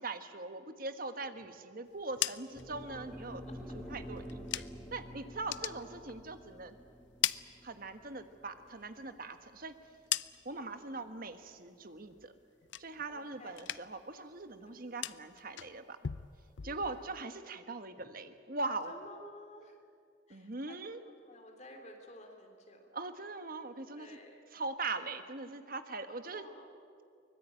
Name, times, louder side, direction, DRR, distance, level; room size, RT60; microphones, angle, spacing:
voice 1, 0.0-3.4 3.7-4.6 4.9-6.7 7.6-9.7 10.4-12.3 12.8-16.0 16.6-18.9 20.3-21.0 22.9-24.1 24.5-26.4, right 3 dB, 50° right, 9 dB, 1.4 m, -41 dB
sound 1, 1.9-5.0 5.3-6.6 6.9-8.3 8.6-10.7 11.1-11.6 11.9-13.2 13.5-14.1 14.4-17.2, left 13 dB, 65° left, 0.5 m, -41 dB
sound 2, 2.5-10.8, equal, ahead, 1.7 m, -48 dB
voice 2, 5.4-6.2 10.5-11.9 13.1-13.7 14.7-15.0 16.6-17.1 17.9-18.1 18.8-19.8 20.3-20.8 21.2-22.9 23.9-24.4 24.9-25.0 26.2-26.7, left 1 dB, 35° left, 3 dB, 3.4 m, -54 dB
24.0 x 20.0 x 8.9 m, 2.3 s
head